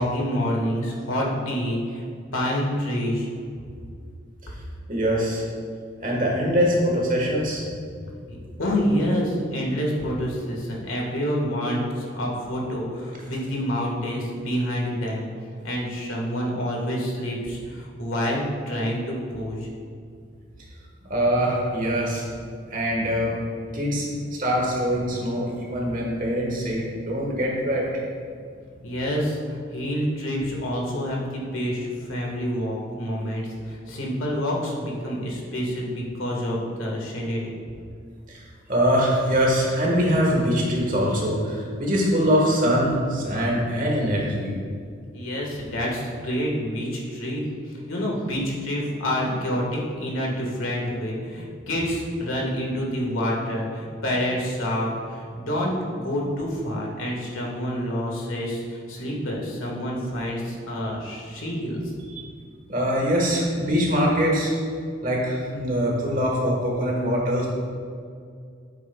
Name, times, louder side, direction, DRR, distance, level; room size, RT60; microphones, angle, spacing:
voice 1, 0.0-2.0 2.3-3.3 8.3-15.3 15.6-19.7 28.8-37.6 45.1-47.4 47.9-61.8, equal, 85° left, -2 dB, 1.6 m, -27 dB
voice 2, 4.9-5.4 6.0-7.6 21.1-22.2 22.7-23.3 23.7-28.0 38.3-44.5 62.1-62.2 62.7-64.6 65.0-67.5, equal, 40° right, -2 dB, 1.5 m, -23 dB
9.1 x 7.5 x 2.3 m, 2.2 s
head